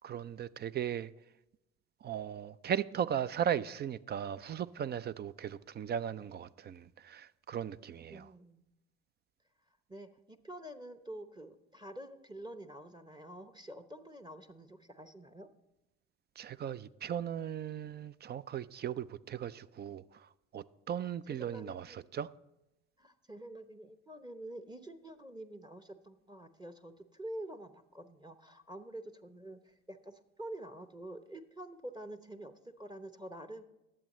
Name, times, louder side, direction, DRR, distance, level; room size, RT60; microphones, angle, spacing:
voice 1, 0.0-1.1 2.0-8.3 16.4-20.0 20.5-22.3, right 9 dB, 30° right, 0.4 m, -37 dB
voice 2, 8.1-8.6 9.9-15.5 21.3-22.0 23.0-33.6, right 1 dB, 10° right, 0.8 m, -47 dB
20.5 x 7.6 x 3.1 m
hypercardioid pair, 60°, 37 cm